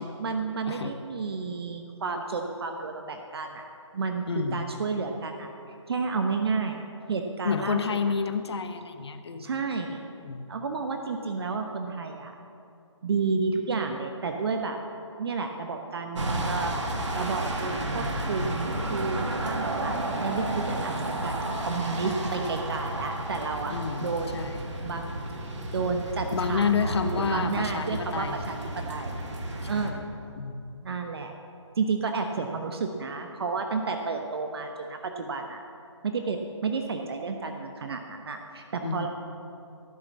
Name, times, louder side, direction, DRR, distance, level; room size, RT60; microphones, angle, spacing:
voice 1, 0.2-3.6 3.9-4.2 4.5-5.5 5.9-6.8 7.1-8.0 9.4-10.0 10.5-12.3 13.0-14.8 15.2-20.9 21.2-24.4 24.8-25.1 25.4-28.6 28.9-29.2 29.6-30.1 30.8-31.3 31.8-35.6 36.0-39.1, right 4 dB, 55° right, 4 dB, 1.0 m, -31 dB
voice 2, 4.3-4.7 7.4-9.6 10.2-10.5 23.7-24.6 26.3-28.4 29.6-30.0 30.4-30.7 38.8-39.1, left 6 dB, 60° left, 9 dB, 1.0 m, -30 dB
sound 1, 16.2-29.9, right 1 dB, 70° right, 2.0 m, -32 dB
14.5 x 7.0 x 7.4 m, 2.7 s
figure-of-eight pair, 150°, 16 cm